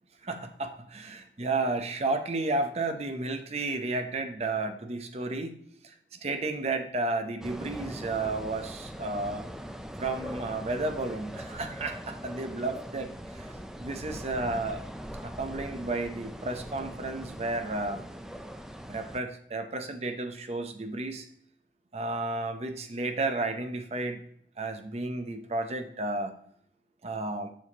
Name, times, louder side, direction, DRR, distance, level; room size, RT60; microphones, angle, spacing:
voice 1, 0.2-5.5 5.8-9.5 10.0-13.1 13.4-13.5 13.8-14.8 15.2-18.0 18.9-21.3 21.9-24.2 24.6-26.3 27.0-27.5, right 2 dB, 35° right, 6 dB, 0.7 m, -32 dB
sound 1, 7.4-19.2, equal, 5° right, 0.3 m, -41 dB
7.2 x 6.3 x 2.9 m, 0.68 s
head